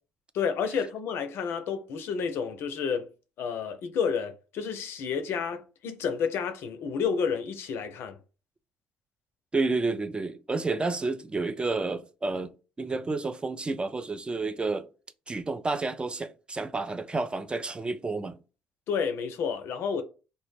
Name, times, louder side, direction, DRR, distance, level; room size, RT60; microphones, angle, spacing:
voice 1, 0.3-3.1 3.4-8.2 18.9-20.0, left 6 dB, 65° left, 0.4 m, -30 dB
voice 2, 9.5-14.9 15.3-18.4, right 3 dB, 20° right, 0.3 m, -30 dB
2.1 x 2.0 x 3.0 m
hypercardioid pair, 60°, 4 cm